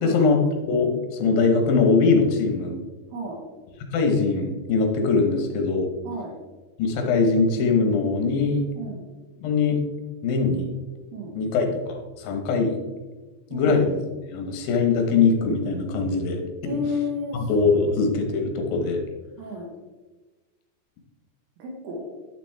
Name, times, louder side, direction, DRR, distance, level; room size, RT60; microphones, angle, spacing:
voice 1, 0.0-2.8 3.9-5.9 6.8-8.6 9.4-9.8 10.2-10.7 11.4-12.7 13.5-14.0 14.3-16.8 17.3-19.0, left 4 dB, 70° left, 3 dB, 2.5 m, -22 dB
voice 2, 13.5-13.8 16.7-17.5 17.8-18.0 19.4-19.7 21.6-22.1, left 2 dB, 75° right, -1 dB, 3.0 m, -32 dB
9.9 x 6.0 x 3.4 m, 1.2 s
omnidirectional pair, 4.7 m